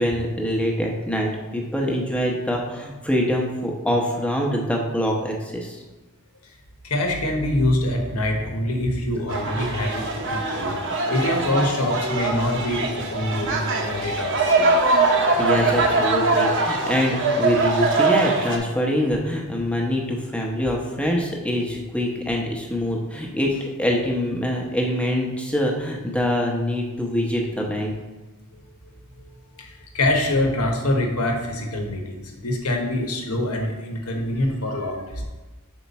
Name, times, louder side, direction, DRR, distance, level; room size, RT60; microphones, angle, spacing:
voice 1, 0.0-5.8 15.0-27.9, equal, 5° left, 0 dB, 0.8 m, -24 dB
voice 2, 6.8-10.8 11.1-14.5 28.5-28.6 29.2-29.3 29.6-35.2, left 1 dB, 80° left, 2 dB, 1.1 m, -25 dB
sound 1, 9.3-18.6, right 3 dB, 55° right, 0.8 m, -22 dB
5.6 x 4.6 x 4.1 m, 1.2 s
head